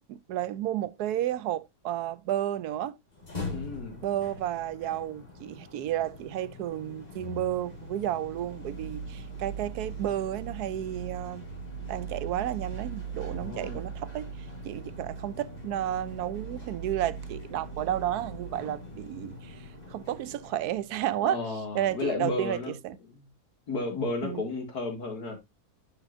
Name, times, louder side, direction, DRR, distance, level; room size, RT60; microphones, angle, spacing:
voice 1, 0.1-3.0 4.0-11.5 11.9-14.3 14.6-21.4 21.7-23.0 24.2-24.4, right 12 dB, 80° right, 1.1 m, -32 dB
sound 1, 3.1-21.2, right 2 dB, 25° left, 2.1 m, -41 dB
voice 2, 3.5-4.1 13.3-13.8 21.2-22.7 23.1-23.3 23.7-25.4, left 3 dB, 80° left, 2.8 m, -33 dB
11.0 x 6.4 x 2.6 m
omnidirectional pair, 1.7 m